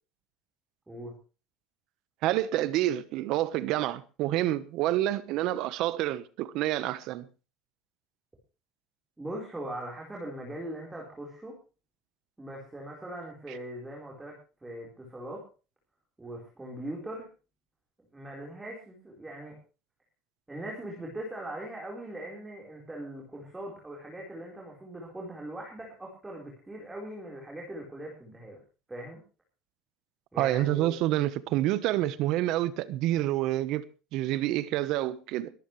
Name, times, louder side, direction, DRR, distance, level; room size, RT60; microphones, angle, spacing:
voice 1, 2.2-7.3 30.4-35.5, right 14 dB, 55° right, 1.1 m, -28 dB
voice 2, 9.2-11.5 12.4-14.4 14.6-15.4 16.2-17.3 18.1-19.5 20.5-28.6 28.9-29.2 30.3-31.0, right 1 dB, 10° right, 4.4 m, -40 dB
21.5 x 14.5 x 3.3 m
cardioid pair, 170°, 0 cm